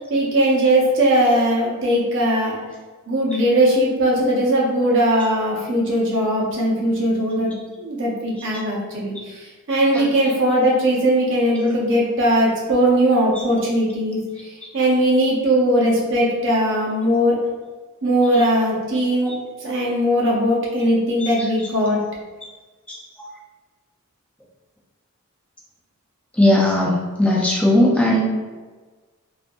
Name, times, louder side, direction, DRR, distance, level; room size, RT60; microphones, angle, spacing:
voice 1, 0.1-2.6 3.1-7.5 7.8-17.4 18.0-19.3 19.6-22.0, right 1 dB, 55° right, -4 dB, 0.7 m, -19 dB
voice 2, 26.4-28.2, left 1 dB, 5° left, -4 dB, 0.3 m, -17 dB
2.6 x 2.4 x 2.2 m, 1.3 s
head